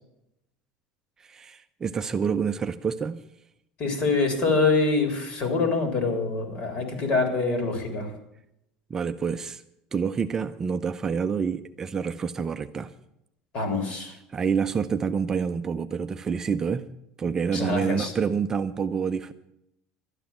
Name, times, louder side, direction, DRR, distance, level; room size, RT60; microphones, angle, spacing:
voice 1, 1.2-3.2 8.9-9.6 9.9-12.9 14.3-16.9 17.2-19.3, right 6 dB, 20° right, 0.5 m, -27 dB
voice 2, 3.8-8.1 13.5-14.2 17.5-18.1, left 3 dB, 45° left, 3.8 m, -25 dB
12.5 x 10.0 x 7.2 m
cardioid pair, 140°, 2 cm